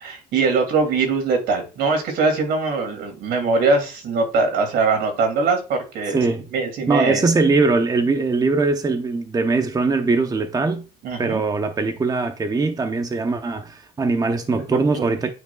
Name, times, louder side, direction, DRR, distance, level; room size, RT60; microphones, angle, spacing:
voice 1, 0.0-6.3 6.5-7.3 11.0-11.4 14.5-15.0, right 4 dB, 75° right, 2.8 m, -22 dB
voice 2, 6.1-6.4 6.9-10.8 11.2-15.3, right 3 dB, 20° right, 0.8 m, -21 dB
9.4 x 5.2 x 2.3 m
cardioid pair, 110°, 17 cm